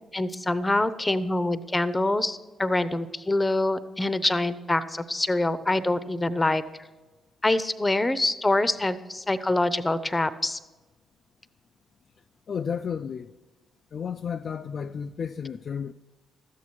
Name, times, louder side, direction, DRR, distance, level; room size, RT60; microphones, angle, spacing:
voice 1, 0.1-6.6 7.4-10.6, left 2 dB, 20° left, 0.7 m, -25 dB
voice 2, 12.5-13.3 13.9-15.9, left 7 dB, 50° left, 0.3 m, -32 dB
13.0 x 8.3 x 4.5 m
figure-of-eight pair, 40°, 0 cm